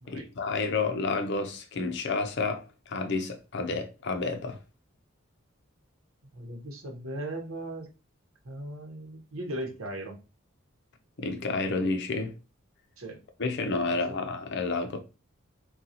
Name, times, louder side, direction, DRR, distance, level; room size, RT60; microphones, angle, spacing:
voice 1, 0.1-4.6 11.2-12.3 13.4-15.0, left 3 dB, 55° left, 0.5 m, -30 dB
voice 2, 6.3-7.9 8.4-10.2 13.0-13.2 13.9-14.2, right 1 dB, 85° right, 0.9 m, -38 dB
3.8 x 2.3 x 2.8 m
head